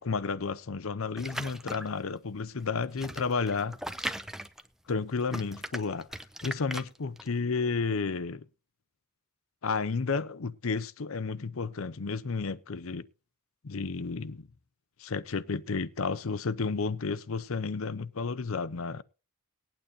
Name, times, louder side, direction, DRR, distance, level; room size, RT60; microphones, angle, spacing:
voice 1, 0.0-3.8 4.9-6.1 6.4-8.4 9.6-13.0 13.6-14.5 15.0-19.0, left 4 dB, 70° left, 0.7 m, -32 dB
sound 1, 1.2-2.0 2.6-5.0 5.3-7.3, equal, ahead, 0.6 m, -38 dB
20.0 x 9.1 x 2.7 m
head